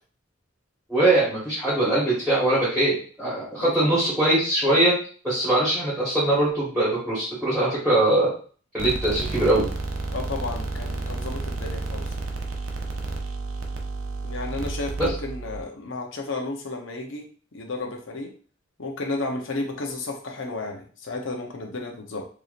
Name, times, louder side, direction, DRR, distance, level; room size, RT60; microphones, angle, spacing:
voice 1, 0.9-4.9 5.2-8.3 8.7-9.7 15.0-15.1, right 1 dB, ahead, -8 dB, 1.4 m, -22 dB
voice 2, 3.6-4.0 10.1-12.2 14.2-18.3 18.8-22.3, left 2 dB, 65° left, 2 dB, 0.8 m, -33 dB
sound 1, 8.8-15.6, right 3 dB, 70° right, 0.6 m, -31 dB
4.7 x 2.8 x 2.5 m, 0.42 s
head